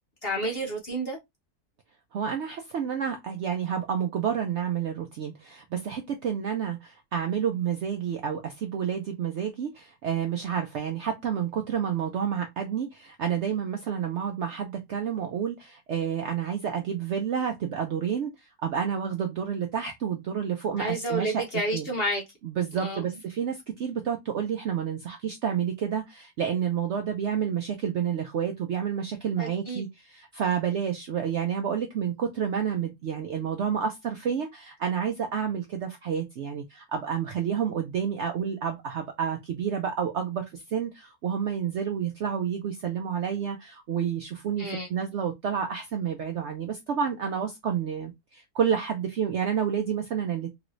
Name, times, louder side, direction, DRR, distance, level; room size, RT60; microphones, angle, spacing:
voice 1, 0.2-1.2 20.8-22.2 22.8-23.0 29.4-29.8 44.6-44.9, right 1 dB, 50° left, 0.7 m, -30 dB
voice 2, 2.1-21.4 21.7-21.9 22.4-50.6, right 8 dB, 70° right, 0.6 m, -29 dB
3.0 x 2.6 x 3.0 m
omnidirectional pair, 1.7 m